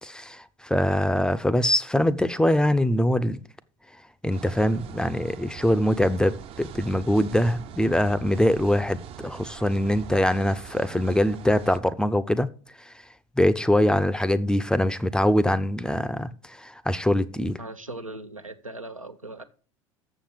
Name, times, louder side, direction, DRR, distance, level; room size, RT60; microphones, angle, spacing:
voice 1, 0.0-3.4 4.2-12.5 12.9-13.0 13.4-17.6, left 1 dB, 5° left, 0.6 m, -23 dB
sound 1, 4.3-11.8, right 9 dB, 35° right, 0.7 m, -42 dB
voice 2, 17.6-19.4, right 2 dB, 90° right, 0.9 m, -39 dB
7.1 x 7.0 x 7.7 m
figure-of-eight pair, 75°, 17 cm